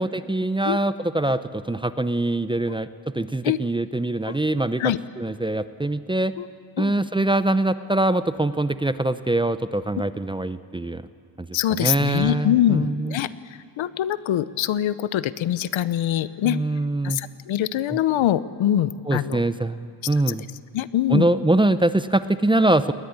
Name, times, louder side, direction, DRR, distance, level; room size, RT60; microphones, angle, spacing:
voice 1, 0.0-4.8 5.2-6.3 6.8-11.0 11.4-11.5 11.8-13.1 16.4-17.2 17.9-18.0 19.1-20.4 21.1-22.9, right 2 dB, 10° right, 13 dB, 0.7 m, -23 dB
voice 2, 11.5-13.3 13.8-16.6 17.0-19.4 20.3-20.4 20.7-21.3, left 11 dB, 70° left, 15 dB, 1.0 m, -23 dB
20.5 x 19.0 x 9.7 m, 2.6 s
cardioid pair, 95°, 48 cm